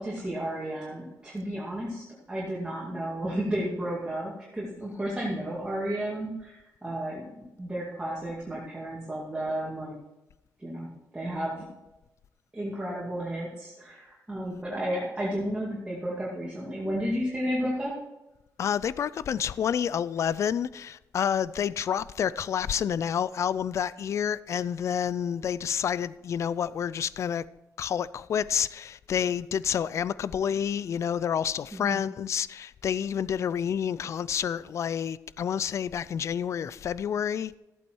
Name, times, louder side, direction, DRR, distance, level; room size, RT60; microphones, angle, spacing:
voice 1, 0.0-7.2 7.6-10.0 10.6-11.7 12.5-18.0 31.7-32.0, right 1 dB, 15° right, 2.3 m, -32 dB
voice 2, 18.6-27.4 27.8-37.6, left 8 dB, 50° left, 0.3 m, -29 dB
14.5 x 8.5 x 4.6 m
wide cardioid pair, 150°, 6 cm